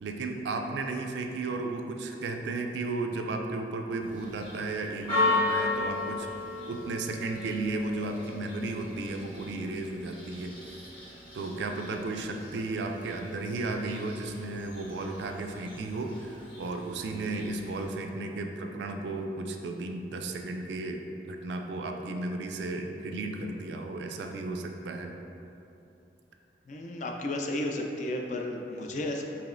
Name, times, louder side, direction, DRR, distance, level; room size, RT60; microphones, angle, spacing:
voice 1, 0.0-6.3 6.7-10.5 11.3-21.0 21.3-25.1, right 2 dB, 75° right, 4 dB, 0.3 m, -34 dB
Church bell, 4.0-17.8, left 3 dB, 25° left, 1.1 m, -36 dB
voice 2, 26.7-29.2, left 1 dB, 45° left, 2 dB, 0.3 m, -33 dB
4.9 x 2.9 x 2.5 m, 2.7 s
head